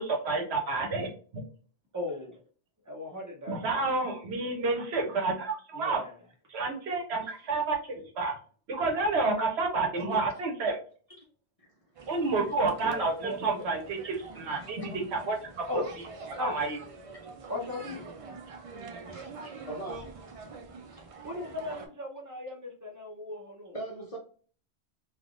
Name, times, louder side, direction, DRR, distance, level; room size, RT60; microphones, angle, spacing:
voice 1, 0.0-1.4 3.5-6.0 6.5-8.3 8.7-10.8 12.1-15.8 16.4-16.8, right 3 dB, 75° right, 1.0 m, -30 dB
voice 2, 1.9-2.4 2.8-3.9 4.5-4.6 5.7-6.1 12.8-13.6 15.7-15.9 16.4-16.6 17.5-18.0 21.2-23.8, left 2 dB, 20° right, 0.7 m, -37 dB
sound 1, 11.9-21.9, right 4 dB, 55° right, 0.4 m, -46 dB
voice 3, 18.8-20.2 20.9-21.1 23.7-24.2, right 1 dB, 40° left, 0.6 m, -41 dB
3.4 x 2.4 x 2.4 m
omnidirectional pair, 1.1 m